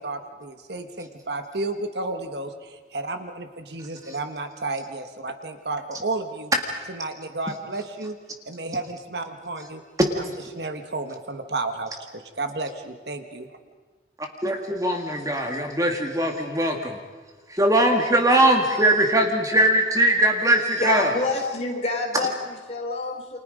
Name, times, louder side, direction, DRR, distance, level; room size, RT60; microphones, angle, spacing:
voice 1, 0.0-6.5 6.9-8.1 8.4-9.8 10.2-13.5, right 2 dB, 60° right, 7 dB, 1.7 m, -32 dB
voice 2, 14.4-17.0 17.5-21.1, right 1 dB, 20° right, 3 dB, 2.0 m, -21 dB
voice 3, 20.8-23.4, left 3 dB, 35° left, 0 dB, 4.1 m, -27 dB
29.5 x 25.5 x 5.2 m, 1.3 s
head